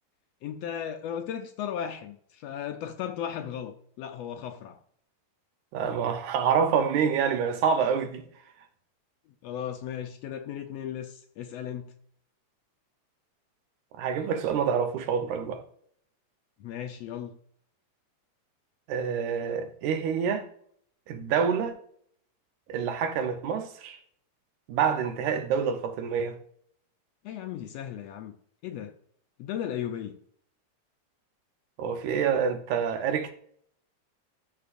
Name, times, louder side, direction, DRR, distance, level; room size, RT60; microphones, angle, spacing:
voice 1, 0.4-4.8 9.4-11.9 16.6-17.4 27.2-28.4 28.6-28.9 29.4-30.2, left 9 dB, 75° left, 1.6 m, -36 dB
voice 2, 5.7-8.3 13.9-15.6 18.9-20.4 21.1-21.7 22.7-24.0 24.7-26.4 31.8-33.3, right 7 dB, 85° right, 2.4 m, -27 dB
13.0 x 6.0 x 2.6 m
omnidirectional pair, 3.4 m